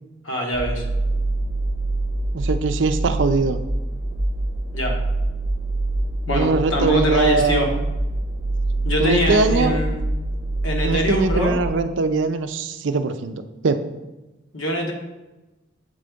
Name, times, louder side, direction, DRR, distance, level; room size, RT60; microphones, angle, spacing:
voice 1, 0.2-0.8 4.7-5.0 6.3-7.7 8.8-10.0 10.6-11.5 14.5-14.9, left 1 dB, 90° left, 0 dB, 1.3 m, -23 dB
sound 1, 0.5-11.7, right 2 dB, 55° left, 1.4 m, -25 dB
voice 2, 2.3-3.6 6.3-7.7 9.0-9.8 10.8-13.9, right 4 dB, 70° right, 9 dB, 0.4 m, -22 dB
7.5 x 3.8 x 3.5 m, 1.0 s
head